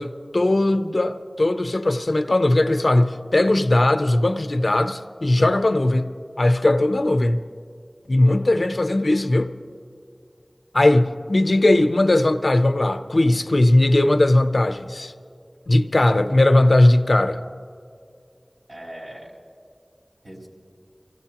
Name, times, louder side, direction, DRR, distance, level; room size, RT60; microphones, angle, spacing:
voice 1, 0.0-7.4 8.1-9.5 10.7-15.1 15.7-17.4, left 1 dB, 70° left, 0.6 m, -19 dB
voice 2, 8.4-8.8 11.6-11.7 18.7-19.4 20.2-20.5, right 1 dB, 70° right, 4.1 m, -41 dB
25.5 x 16.0 x 2.9 m
wide cardioid pair, 45°, 0 cm